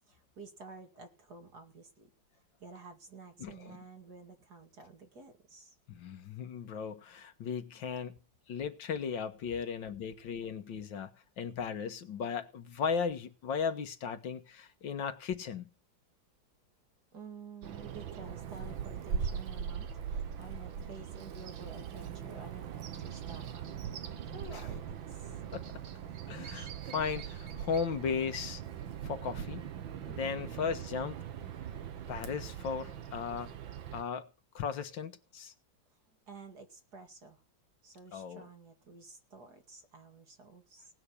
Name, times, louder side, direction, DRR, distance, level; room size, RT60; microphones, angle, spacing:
voice 1, 0.1-2.1 2.6-5.7 17.1-23.7 24.2-25.0 30.2-30.6 36.3-37.4 37.8-40.9, right 4 dB, 55° right, 2.9 m, -51 dB
voice 2, 3.4-3.8 5.9-8.2 8.5-11.1 11.4-15.7 24.5-24.7 25.5-25.6 26.3-28.6 29.0-29.7 30.1-31.2 32.1-33.5 33.9-34.3 34.6-35.5 38.1-38.5, left 6 dB, 80° left, 2.0 m, -36 dB
Bird vocalization bird call bird song, 17.6-34.0, right 8 dB, 90° right, 2.0 m, -41 dB
18.5 x 6.2 x 8.5 m
omnidirectional pair, 2.1 m